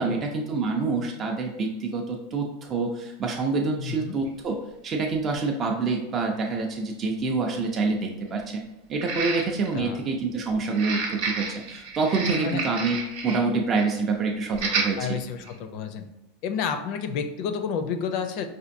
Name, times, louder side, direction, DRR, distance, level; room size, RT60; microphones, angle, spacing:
voice 1, 0.0-4.6 4.8-8.6 8.9-15.2, right 4 dB, 30° right, 1 dB, 0.4 m, -27 dB
voice 2, 3.8-4.2 9.7-10.0 12.4-12.6 15.0-16.1 16.4-18.5, left 7 dB, 55° left, 8 dB, 0.4 m, -30 dB
sound 1, 4.3-4.4 5.3-5.4 5.9-6.0 9.0-9.8 10.7-13.4 13.7-13.9 14.5-14.9 15.4-15.5, right 4 dB, 70° right, 0.7 m, -30 dB
4.2 x 2.5 x 2.6 m, 0.96 s
supercardioid pair, 125°, 0 cm